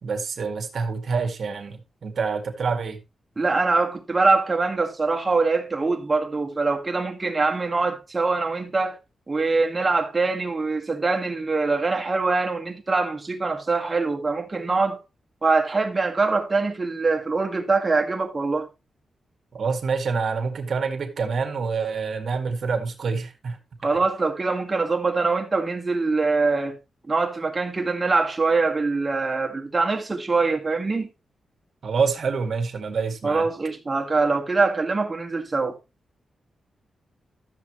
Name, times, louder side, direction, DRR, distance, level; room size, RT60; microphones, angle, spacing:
voice 1, 0.0-3.0 19.5-23.6 31.8-33.5, right 5 dB, 55° right, 2.1 m, -27 dB
voice 2, 3.4-9.0 9.3-15.0 15.4-18.7 23.8-26.8 27.1-31.1 33.2-35.8, right 3 dB, 20° right, 1.9 m, -23 dB
13.0 x 7.2 x 3.1 m
wide cardioid pair, 140°, 0 cm